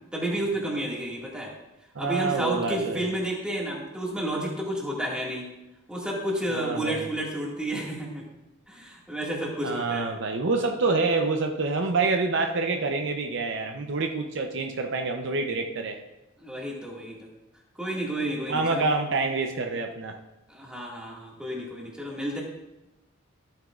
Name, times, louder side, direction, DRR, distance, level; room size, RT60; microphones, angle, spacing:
voice 1, 0.1-1.5 2.0-5.5 5.9-8.2 8.7-10.1 16.4-17.3 17.8-18.9 20.5-22.4, right 1 dB, 5° right, -4 dB, 2.0 m, -31 dB
voice 2, 1.9-3.0 6.5-7.1 9.6-16.0 18.5-20.2, right 3 dB, 60° right, 4 dB, 0.7 m, -27 dB
14.0 x 9.1 x 2.5 m, 0.99 s
head